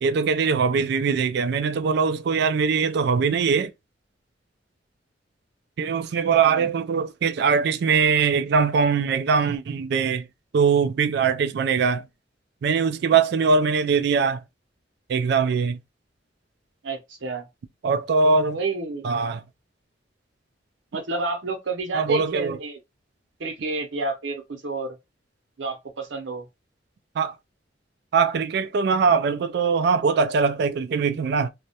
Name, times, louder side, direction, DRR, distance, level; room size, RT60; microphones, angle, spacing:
voice 1, 0.0-3.7 5.8-10.2 10.5-12.1 12.6-14.4 15.1-15.8 17.8-18.6 19.0-19.4 21.9-22.6 27.2-27.3 28.1-31.5, right 5 dB, 60° right, 0.3 m, -21 dB
voice 2, 16.8-17.5 18.5-19.1 20.9-22.8 23.4-25.0 25.6-26.5, right 3 dB, 85° right, 0.7 m, -30 dB
2.3 x 2.0 x 2.8 m
head